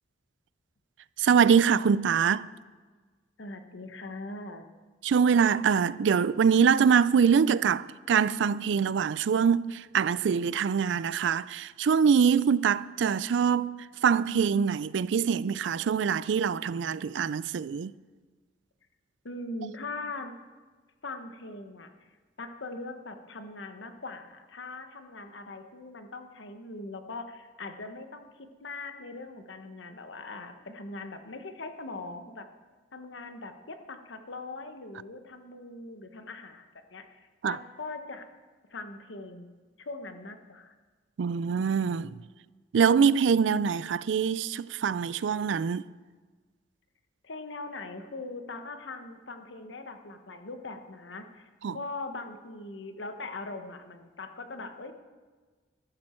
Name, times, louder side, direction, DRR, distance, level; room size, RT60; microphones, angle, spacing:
voice 1, 1.2-2.5 5.0-17.9 37.4-37.6 41.2-42.1 42.7-45.8 51.6-51.8, right 7 dB, 75° right, 0.4 m, -24 dB
voice 2, 3.4-4.7 19.2-20.3 21.0-22.1 22.4-32.5 32.9-38.3 38.7-39.5 39.8-40.7 47.2-54.9, left 3 dB, 85° left, 1.1 m, -41 dB
13.0 x 12.0 x 4.4 m
head